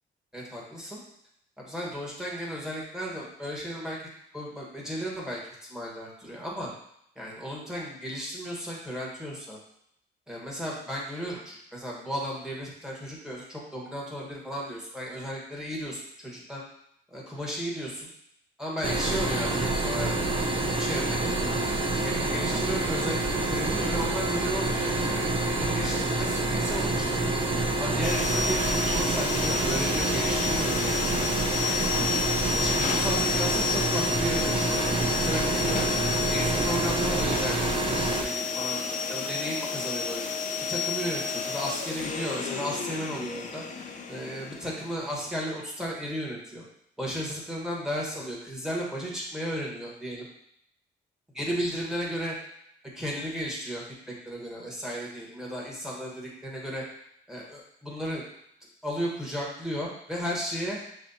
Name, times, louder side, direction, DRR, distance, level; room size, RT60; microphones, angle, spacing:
voice 1, 0.3-1.0 1.6-4.0 4.3-5.4 5.7-6.7 7.1-9.6 10.3-16.6 17.1-18.1 18.6-20.2 20.6-21.6 22.0-27.3 27.8-31.3 31.9-32.2 32.5-34.8 35.2-35.9 36.3-40.3 40.7-46.6 47.0-50.3 51.3-52.3 52.9-56.8 57.3-58.2 58.8-60.8, equal, 5° right, -4 dB, 1.5 m, -34 dB
sound 1, 18.8-38.2, right 2 dB, 25° right, 0.5 m, -27 dB
sound 2, 28.0-45.3, left 5 dB, 40° left, 0.5 m, -31 dB
6.4 x 2.5 x 2.8 m, 0.74 s
cardioid pair, 90°, 20 cm